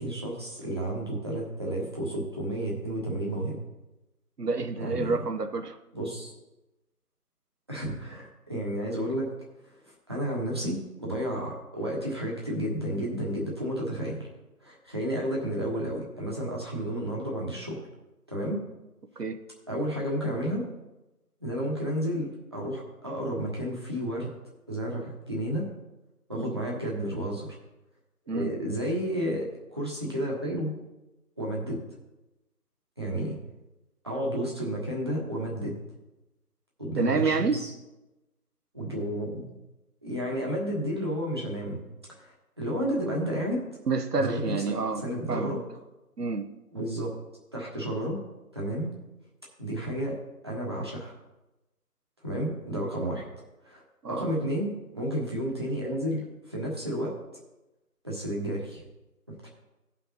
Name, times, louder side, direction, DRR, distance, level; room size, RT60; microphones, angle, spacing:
voice 1, 0.0-3.6 4.8-5.1 5.9-6.3 7.7-9.3 9.6-14.3 14.6-17.8 18.3-18.6 19.7-20.6 21.4-24.3 24.7-25.7 26.3-27.6 28.3-30.8 31.4-31.8 33.0-33.4 34.0-35.8 36.8-37.7 38.7-39.5 40.0-41.8 42.1-43.6 44.2-45.6 46.7-47.2 47.5-48.2 48.5-48.9 49.6-50.2 50.4-51.1 52.2-53.3 53.6-53.8 54.1-57.2 58.0-58.8 59.3-59.5, equal, 15° right, -4 dB, 1.3 m, -31 dB
voice 2, 4.4-5.8 19.2-19.4 26.4-26.5 28.3-28.5 37.0-37.6 43.9-45.0 45.3-45.5 46.2-46.5 54.0-54.3, right 4 dB, 80° right, 8 dB, 1.0 m, -28 dB
16.0 x 5.7 x 4.0 m, 1.0 s
figure-of-eight pair, 165°, 47 cm